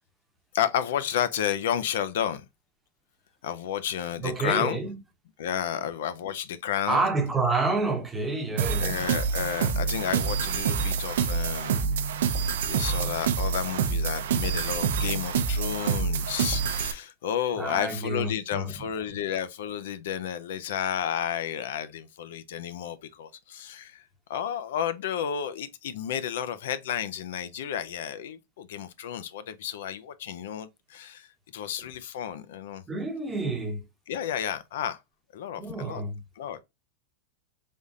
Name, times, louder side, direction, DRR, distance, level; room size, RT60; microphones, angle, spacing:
voice 1, 0.5-2.4 3.4-4.9 5.4-7.1 8.8-11.8 12.2-12.4 12.7-24.0 24.3-32.8 34.1-35.0 35.3-36.0 36.4-36.6, left 9 dB, 75° left, 0.5 m, -31 dB
voice 2, 4.2-4.9 6.9-9.0 17.6-18.7 32.9-33.8 35.6-36.2, right 3 dB, 10° right, 0.8 m, -28 dB
sound 1, 8.6-16.9, right 6 dB, 80° right, 0.6 m, -27 dB
3.6 x 3.6 x 2.7 m
supercardioid pair, 140°, 0 cm